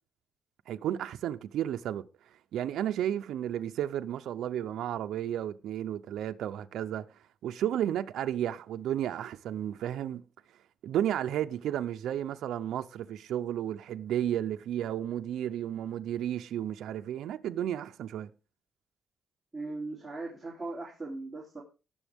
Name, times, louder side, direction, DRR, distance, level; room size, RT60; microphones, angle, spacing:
voice 1, 0.7-7.1 7.4-10.2 10.8-18.3, right 11 dB, 80° right, 0.6 m, -33 dB
voice 2, 19.5-21.6, right 3 dB, 10° right, 3.3 m, -39 dB
18.5 x 6.9 x 3.5 m
cardioid pair, 145°, 0 cm